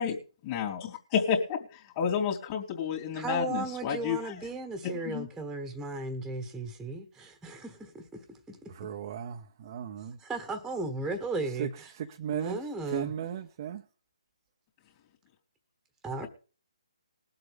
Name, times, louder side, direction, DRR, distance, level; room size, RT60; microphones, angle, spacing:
voice 1, 0.5-4.4 5.1-5.3, left 7 dB, 30° left, 3.1 m, -30 dB
voice 2, 3.1-8.6 10.2-11.9 12.3-13.1 16.0-16.3, right 3 dB, 5° right, 1.5 m, -36 dB
voice 3, 8.8-10.2 11.6-11.7 12.0-12.6 12.9-13.8, right 9 dB, 35° right, 0.9 m, -36 dB
21.5 x 7.9 x 3.6 m
figure-of-eight pair, 145°, 4 cm